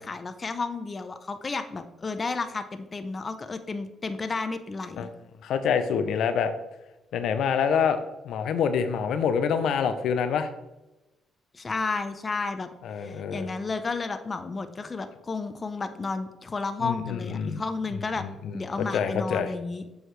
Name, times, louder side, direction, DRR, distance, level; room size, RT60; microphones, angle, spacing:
voice 1, 0.0-5.1 11.5-12.7 13.0-18.2 18.5-19.8, left 3 dB, 30° left, 9 dB, 0.6 m, -32 dB
voice 2, 5.4-6.5 7.1-10.5 12.8-13.5 16.8-17.6 18.2-18.5 18.9-19.5, left 7 dB, 75° left, 9 dB, 0.6 m, -26 dB
7.6 x 6.4 x 3.3 m, 1.0 s
cardioid pair, 90°, 0 cm